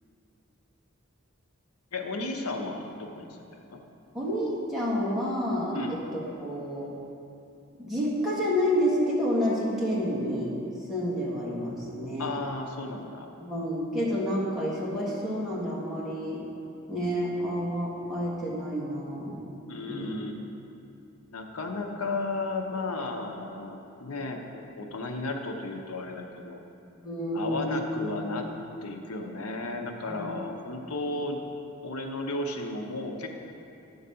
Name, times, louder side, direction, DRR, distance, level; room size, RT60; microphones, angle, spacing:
voice 1, 1.9-3.3 3.7-3.8 5.7-6.0 12.2-13.3 19.7-20.3 21.3-26.6 27.3-28.5 28.8-31.4 31.8-33.3, left 2 dB, 90° left, 3 dB, 0.8 m, -34 dB
voice 2, 4.1-6.9 7.8-10.6 10.9-12.3 13.4-16.4 16.9-19.4 19.9-20.1 27.0-28.4 30.1-30.4 30.7-30.8, equal, ahead, -8 dB, 1.5 m, -29 dB
9.5 x 4.0 x 6.8 m, 2.7 s
head